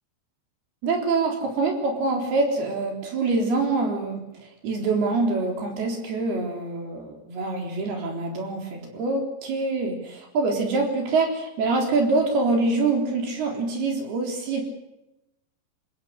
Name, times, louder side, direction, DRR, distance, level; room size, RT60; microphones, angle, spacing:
voice 1, 0.8-14.6, right 3 dB, 60° right, 2 dB, 5.7 m, -25 dB
27.5 x 16.5 x 8.1 m, 0.92 s
omnidirectional pair, 5.1 m